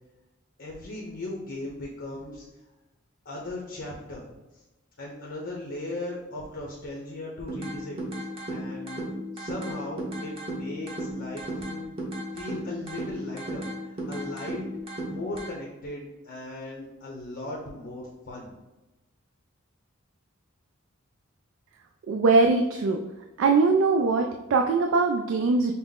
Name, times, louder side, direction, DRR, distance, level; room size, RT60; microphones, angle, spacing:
voice 1, 0.6-2.5 3.2-4.3 5.0-11.8 12.3-14.7 15.0-18.5, left 2 dB, 55° left, -2 dB, 0.7 m, -38 dB
sound 1, 7.5-15.5, equal, 30° right, 0.9 m, -35 dB
voice 2, 22.1-23.0 23.4-25.7, right 3 dB, 65° right, 3 dB, 0.3 m, -21 dB
5.7 x 2.0 x 3.6 m, 1.0 s
head